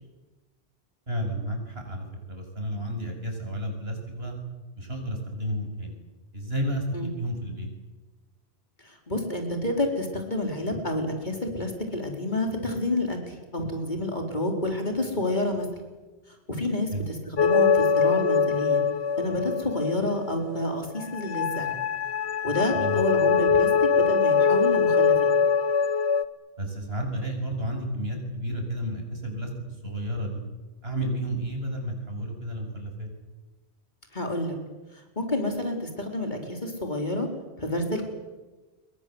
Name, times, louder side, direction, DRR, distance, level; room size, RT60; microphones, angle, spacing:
voice 1, 1.1-4.4 4.8-5.9 6.3-7.7 16.9-17.0 22.7-23.0 26.6-29.5 29.8-30.4 30.8-33.1, equal, 65° right, 2 dB, 7.5 m, -31 dB
voice 2, 8.8-15.7 16.5-18.8 19.2-21.8 22.4-25.3 34.1-34.6 34.9-37.3 37.6-38.0, left 1 dB, 45° left, 3 dB, 4.7 m, -29 dB
sound 1, 17.4-20.6 21.0-26.2, left 6 dB, 70° left, 1.4 m, -23 dB
28.5 x 23.0 x 8.1 m, 1.2 s
omnidirectional pair, 1.1 m